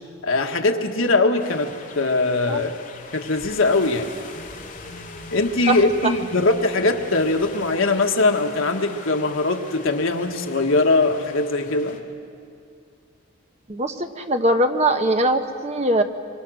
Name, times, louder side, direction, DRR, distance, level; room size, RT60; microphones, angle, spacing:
voice 1, 0.2-2.7 3.1-4.1 5.3-12.0, left 3 dB, 80° left, 4 dB, 1.7 m, -21 dB
sound 1, 1.4-12.0, left 3 dB, 40° left, 2.2 m, -41 dB
voice 2, 13.7-16.0, right 1 dB, 30° right, 6 dB, 1.0 m, -21 dB
24.5 x 24.5 x 6.4 m, 2.4 s
head